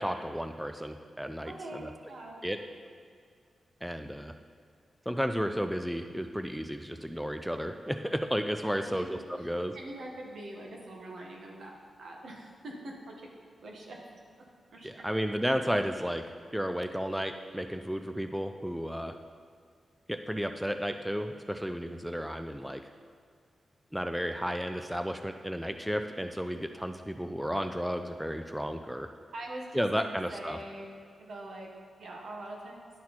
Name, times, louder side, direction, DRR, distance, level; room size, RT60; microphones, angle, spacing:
voice 1, 0.0-1.9 2.4-2.6 3.8-4.3 5.1-9.8 14.8-19.2 20.1-22.8 23.9-29.1 29.7-30.6, equal, ahead, 7 dB, 0.3 m, -33 dB
voice 2, 1.4-2.4 8.7-9.1 9.7-11.7 12.0-13.3 13.6-14.0 14.7-15.1 29.3-30.8 31.2-31.7 32.0-32.9, right 1 dB, 75° right, -1 dB, 1.3 m, -43 dB
11.0 x 4.2 x 4.3 m, 2.2 s
wide cardioid pair, 105°, 0 cm